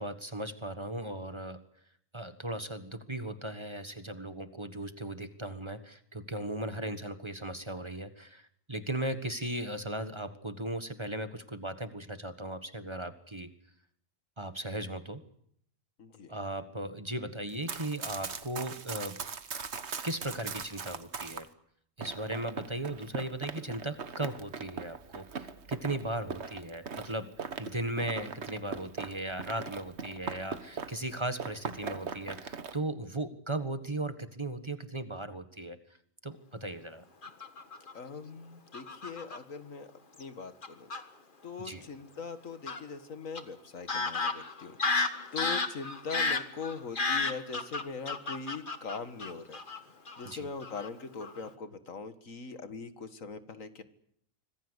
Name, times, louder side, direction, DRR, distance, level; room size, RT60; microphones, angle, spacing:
voice 1, 0.0-1.6 2.1-13.5 14.4-15.2 16.3-19.2 20.0-21.5 22.0-27.3 27.6-35.8 36.2-37.0 41.6-41.9 50.2-50.5, right 1 dB, 20° right, 9 dB, 1.5 m, -37 dB
voice 2, 16.0-16.3 37.9-39.9 40.2-40.9 41.4-44.8 45.3-49.6 50.2-53.8, left 4 dB, 80° left, 10 dB, 2.1 m, -41 dB
Run, 17.5-21.5 22.0-31.1 31.4-32.8, right 5 dB, 55° right, 1.6 m, -40 dB
Fowl / Bird vocalization bird call bird song, 37.2-37.9 38.7-39.4 40.2-40.3 40.6-41.0 42.7-42.8 43.3-43.4 43.9-49.8 50.1-50.3 50.6-50.9 51.2-51.5, left 3 dB, 40° left, 1.8 m, -32 dB
25.5 x 19.5 x 8.2 m, 0.69 s
omnidirectional pair, 1.4 m